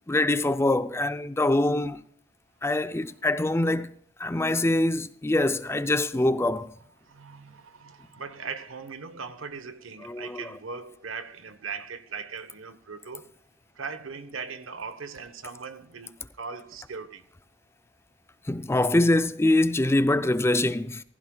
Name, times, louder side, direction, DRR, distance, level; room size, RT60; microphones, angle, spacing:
voice 1, 0.1-2.0 2.6-6.7 10.0-10.4 18.5-21.0, left 1 dB, 15° left, 0.5 m, -24 dB
voice 2, 7.0-13.3 13.7-17.3, right 5 dB, 90° right, 1.1 m, -39 dB
15.5 x 15.0 x 2.3 m
head